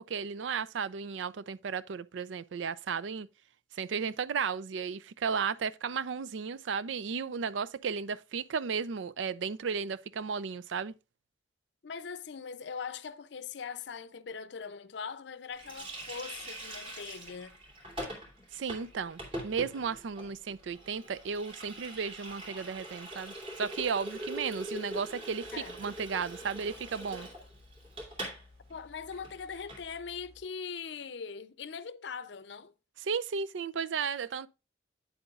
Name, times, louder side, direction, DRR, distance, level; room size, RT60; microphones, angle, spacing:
voice 1, 0.0-3.3 3.7-10.9 18.5-25.5 25.8-27.3 33.0-34.5, right 6 dB, 85° right, 0.4 m, -34 dB
voice 2, 11.8-17.6 25.5-25.8 28.7-32.7, left 6 dB, 70° left, 0.5 m, -41 dB
Water tap faucet, 15.6-28.4 28.7-28.8 29.1-29.8, right 1 dB, 30° right, 3.0 m, -43 dB
sound 1, 25.4-30.4, left 2 dB, 60° right, 2.5 m, -58 dB
9.2 x 7.7 x 2.4 m
head